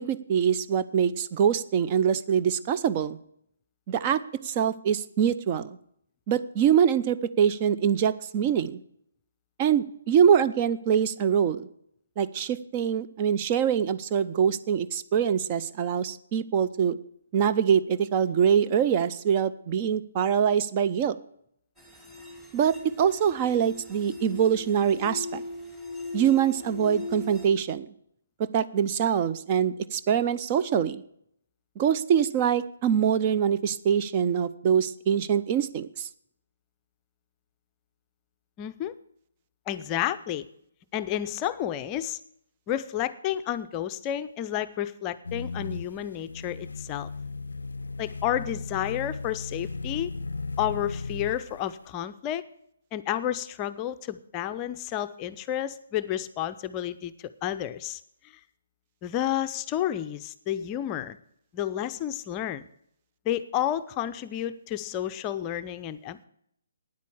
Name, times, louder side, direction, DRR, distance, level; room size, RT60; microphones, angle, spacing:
voice 1, 0.0-3.2 3.9-5.8 6.3-8.8 9.6-11.7 12.2-17.0 17.3-21.2 22.5-25.4 26.1-27.9 28.4-31.0 31.8-36.1, right 8 dB, 30° right, 12 dB, 0.6 m, -24 dB
sound 1, 21.8-27.5, left 2 dB, 5° right, 2.3 m, -39 dB
voice 2, 38.6-38.9 39.7-40.5 40.9-42.2 42.7-47.1 48.0-50.1 50.6-52.4 52.9-58.0 59.0-61.2 61.5-62.6 63.3-66.2, left 11 dB, 25° left, 11 dB, 0.5 m, -31 dB
sound 2, 45.2-51.7, left 3 dB, 75° left, 0.4 m, -36 dB
9.6 x 8.3 x 8.5 m, 0.71 s
figure-of-eight pair, 140°, 0 cm